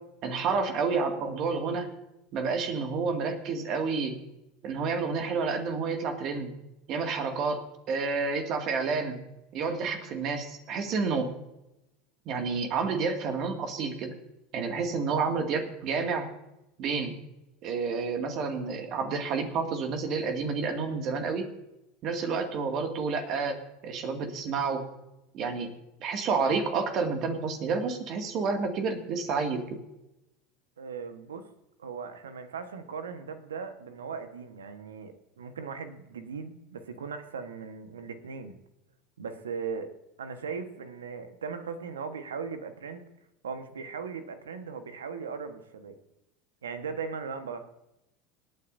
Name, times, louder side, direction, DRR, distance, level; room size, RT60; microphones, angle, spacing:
voice 1, 0.2-1.9 2.3-4.2 4.6-6.5 6.9-7.6 7.9-9.2 9.5-11.3 12.3-14.1 14.5-16.3 16.8-17.1 17.6-21.5 22.0-24.8 25.3-25.7 26.0-29.6, right 4 dB, 50° right, 5 dB, 2.1 m, -29 dB
voice 2, 30.8-31.4 31.8-38.5 39.2-39.9 40.2-43.0 43.4-46.0 46.6-47.6, right 5 dB, 80° right, 9 dB, 1.2 m, -38 dB
26.5 x 9.3 x 2.7 m, 0.91 s
hypercardioid pair, 80°, 0 cm